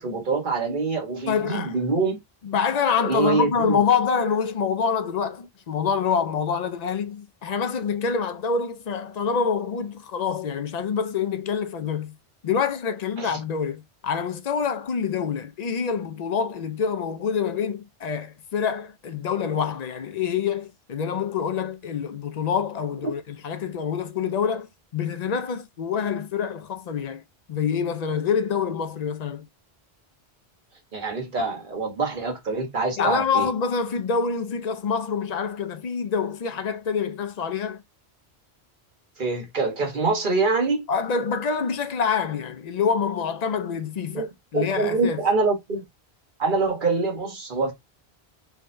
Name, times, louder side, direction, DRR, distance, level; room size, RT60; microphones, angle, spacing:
voice 1, 0.0-2.2 3.0-3.8 13.2-13.4 30.9-33.5 39.2-40.8 44.1-45.8 46.4-47.7, right 3 dB, 50° right, 1.4 m, -25 dB
voice 2, 1.3-1.7 2.4-12.1 12.4-27.2 27.5-29.5 33.0-37.8 40.9-44.3 44.5-45.2, left 6 dB, 55° left, 0.5 m, -26 dB
3.5 x 2.8 x 3.1 m
omnidirectional pair, 1.1 m